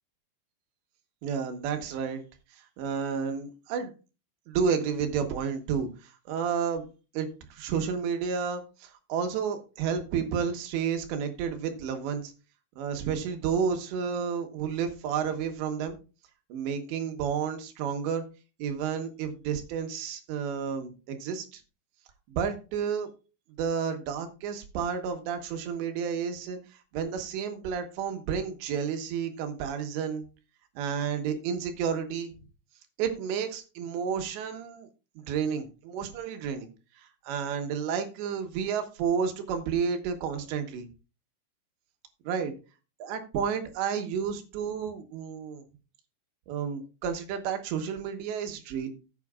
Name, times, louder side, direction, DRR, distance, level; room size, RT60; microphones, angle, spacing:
voice 1, 1.2-2.2 2.8-3.9 4.5-6.9 7.2-12.3 12.8-16.0 16.5-18.2 18.6-21.6 22.3-23.1 23.6-26.6 26.9-30.3 30.8-32.3 33.0-34.9 35.3-36.7 37.3-40.9 42.3-42.5 43.0-45.6 46.5-48.9, right 7 dB, 80° right, 6 dB, 3.4 m, -31 dB
14.5 x 8.3 x 2.4 m, 0.32 s
omnidirectional pair, 5.1 m